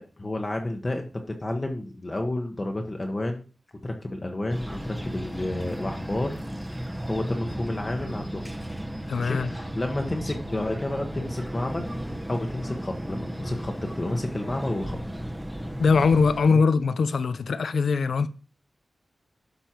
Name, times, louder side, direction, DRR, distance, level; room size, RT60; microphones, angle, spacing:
voice 1, 0.2-3.5 3.8-8.5 9.2-11.9 12.3-15.0 16.5-16.6, left 1 dB, 25° left, 1.1 m, -31 dB
sound 1, 4.5-16.4, equal, 10° right, 1.1 m, -35 dB
sound 2, 6.3-13.6, right 3 dB, 50° right, 2.1 m, -52 dB
voice 2, 9.1-9.5 15.8-18.3, left 5 dB, 80° left, 0.6 m, -22 dB
12.0 x 5.4 x 4.5 m
wide cardioid pair, 135°, 0 cm